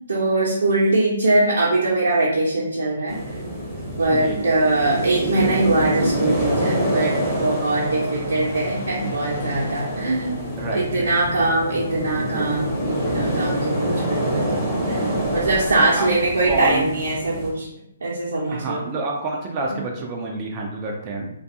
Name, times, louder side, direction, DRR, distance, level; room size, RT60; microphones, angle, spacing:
voice 1, 0.1-3.2 4.0-7.1 7.4-10.4 10.7-12.7 13.0-14.4 14.9-17.7 18.0-18.8, right 2 dB, 75° right, -6 dB, 0.7 m, -22 dB
sound 1, 3.1-17.5, right 1 dB, 5° right, 0.7 m, -26 dB
voice 2, 4.1-4.4 10.6-11.1 15.8-16.1 16.4-16.9 18.5-21.3, right 3 dB, 30° right, 0 dB, 0.4 m, -28 dB
sound 2, 6.7-14.4, left 3 dB, 50° left, 0.4 m, -34 dB
2.5 x 2.3 x 2.6 m, 0.75 s
figure-of-eight pair, 135°, 0 cm